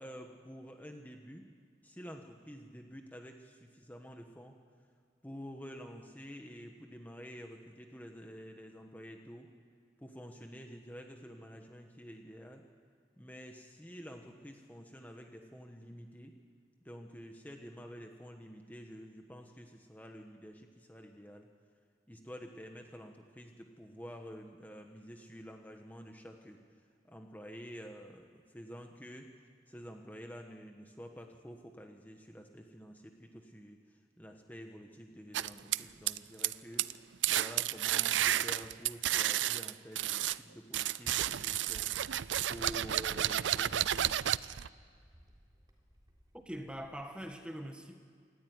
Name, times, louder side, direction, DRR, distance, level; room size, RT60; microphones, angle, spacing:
voice 1, 0.0-1.5 1.8-4.5 5.2-9.5 10.0-12.6 13.2-16.3 16.8-21.5 22.1-26.6 27.0-29.3 29.7-41.9 42.5-44.3, equal, 10° left, 3 dB, 1.4 m, -49 dB
sound 1, 35.3-36.5 36.8-37.0 37.2-40.4 40.7-44.7, right 12 dB, 85° right, 0.5 m, -31 dB
Wind, 41.7-47.4, equal, 20° right, 3.6 m, -57 dB
voice 2, 46.3-48.0, equal, 5° right, 5 dB, 1.5 m, -43 dB
27.0 x 14.0 x 9.7 m, 2.1 s
head